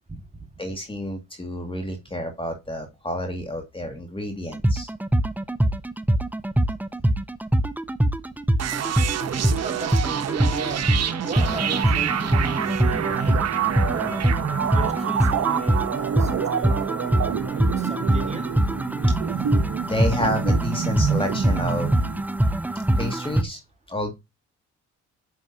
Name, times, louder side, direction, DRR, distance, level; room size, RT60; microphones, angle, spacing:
voice 1, 0.1-0.5 9.6-13.6 13.9-14.3 14.7-17.2 17.8-18.6, right 3 dB, 20° right, 1.8 m, -37 dB
voice 2, 0.6-4.9 19.9-21.9 23.0-23.6 23.9-24.1, left 1 dB, 15° left, 2.2 m, -29 dB
sound 1, 4.5-23.4, right 1 dB, 5° right, 0.6 m, -23 dB
sound 2, 8.6-22.2, right 9 dB, 55° right, 1.1 m, -27 dB
9.8 x 6.0 x 2.8 m
cardioid pair, 75°, 31 cm